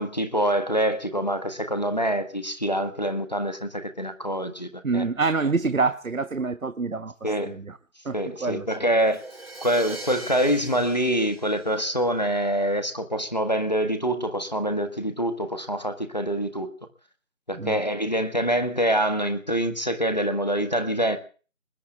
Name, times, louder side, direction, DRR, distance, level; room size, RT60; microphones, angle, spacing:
voice 1, 0.0-5.0 7.2-7.6 8.1-9.2 9.6-16.7 17.5-21.2, equal, 30° left, 1.5 m, -25 dB
voice 2, 4.8-7.8 8.0-8.7 9.0-9.1 17.6-17.8, right 4 dB, 80° right, 1.1 m, -27 dB
Crash cymbal, 9.0-12.8, right 2 dB, 50° right, 4.6 m, -42 dB
29.5 x 21.0 x 2.4 m
figure-of-eight pair, 180°, 40 cm